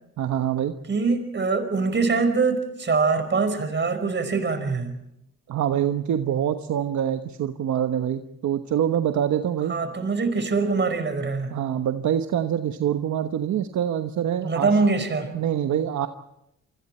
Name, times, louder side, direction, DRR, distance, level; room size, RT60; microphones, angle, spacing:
voice 1, 0.2-0.8 5.5-9.7 11.5-14.7 15.3-16.1, right 10 dB, 65° right, 7 dB, 1.2 m, -25 dB
voice 2, 0.9-4.9 9.7-11.5 14.4-15.3, right 4 dB, 35° right, 9 dB, 5.1 m, -23 dB
29.0 x 25.0 x 4.5 m, 0.81 s
cardioid pair, 90°, 30 cm